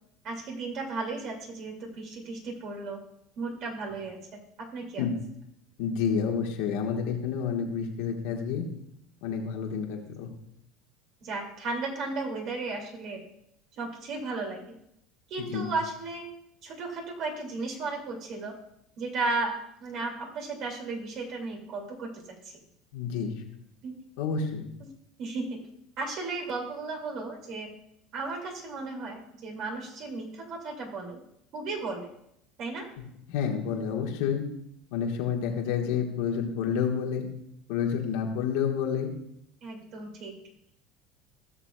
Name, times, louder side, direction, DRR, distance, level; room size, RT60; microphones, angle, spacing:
voice 1, 0.2-3.0 3.4-4.2 4.7-5.0 11.2-13.2 13.8-14.8 15.3-16.3 16.6-18.6 19.0-19.5 19.8-22.6 23.8-24.0 24.8-24.9 25.2-25.6 26.0-27.7 28.1-31.2 31.5-32.1 32.6-32.9 39.6-40.4, right 3 dB, 55° right, 1 dB, 2.4 m, -34 dB
voice 2, 5.8-8.6 9.2-10.3 15.4-15.7 22.9-23.3 24.2-24.7 33.3-34.4 34.9-37.3 37.7-39.1, left 7 dB, 70° left, 2 dB, 1.4 m, -29 dB
16.5 x 6.9 x 2.3 m, 0.78 s
hypercardioid pair, 75°, 0 cm